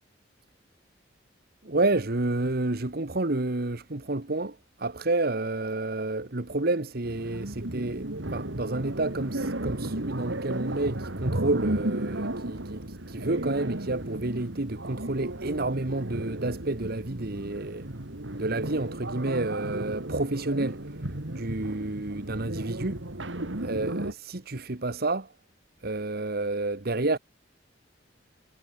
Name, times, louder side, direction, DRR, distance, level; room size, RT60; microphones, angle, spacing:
voice 1, 1.6-17.9 18.3-20.8 21.3-23.0 23.6-25.3 25.8-27.2, right 2 dB, 55° right, 1.4 m, -30 dB
sound 1, 7.0-24.1, right 1 dB, 80° right, 2.6 m, -34 dB
head